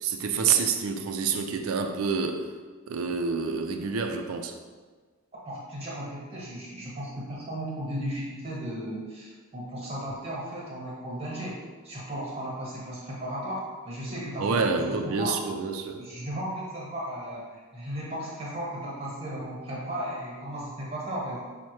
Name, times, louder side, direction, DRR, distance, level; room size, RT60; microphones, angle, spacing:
voice 1, 0.0-2.5 2.9-4.6 14.4-16.0, right 5 dB, 75° right, 5 dB, 0.4 m, -27 dB
voice 2, 5.3-11.6 11.8-15.3 16.0-21.4, right 1 dB, 30° right, -6 dB, 1.1 m, -35 dB
5.6 x 2.1 x 3.0 m, 1.5 s
head